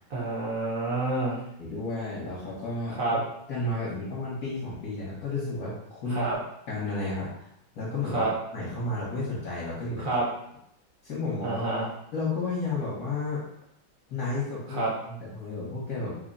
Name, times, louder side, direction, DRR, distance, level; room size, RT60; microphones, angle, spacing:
voice 1, 0.1-1.4 3.0-3.2 6.1-6.4 8.1-8.3 10.0-10.3 11.4-11.9 14.7-14.9, right 2 dB, 55° right, -4 dB, 1.0 m, -28 dB
voice 2, 1.6-3.0 3.5-6.2 6.7-8.3 8.5-10.1 11.0-11.6 12.1-13.4 14.1-16.2, left 3 dB, 60° left, -8 dB, 1.3 m, -32 dB
3.6 x 2.1 x 3.9 m, 0.76 s
omnidirectional pair, 2.2 m